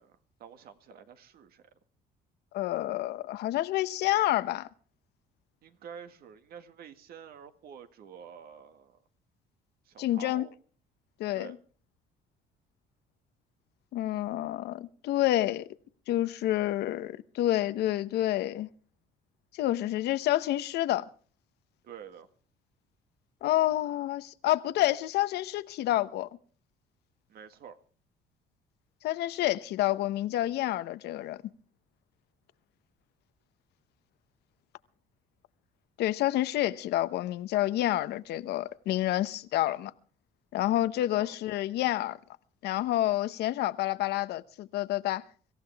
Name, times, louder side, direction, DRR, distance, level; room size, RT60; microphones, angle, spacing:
voice 1, 0.0-1.7 5.6-9.0 9.8-10.5 11.3-11.6 21.8-22.3 27.3-27.8 41.0-41.3, right 8 dB, 65° right, 1.9 m, -48 dB
voice 2, 2.5-4.7 10.0-10.5 11.2-11.5 13.9-15.7 16.1-18.7 19.5-21.1 23.4-26.3 29.0-31.4 36.0-39.9 40.5-42.2 42.6-45.2, left 14 dB, 75° left, 1.0 m, -28 dB
25.0 x 15.0 x 3.5 m
cardioid pair, 110°, 17 cm